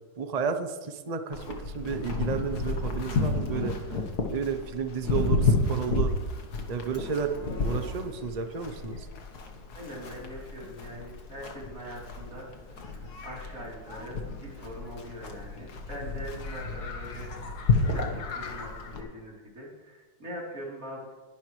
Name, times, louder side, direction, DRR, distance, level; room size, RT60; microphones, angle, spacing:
voice 1, 0.2-4.0 4.3-6.1 6.7-7.3 7.6-9.1, right 6 dB, 75° right, 7 dB, 0.3 m, -32 dB
Livestock farm animals working animals, 1.3-19.0, left 3 dB, 55° left, 1.8 m, -31 dB
voice 2, 9.7-17.3 17.9-21.1, equal, 40° right, -5 dB, 4.0 m, -42 dB
20.5 x 10.5 x 3.2 m, 1.2 s
omnidirectional pair, 2.1 m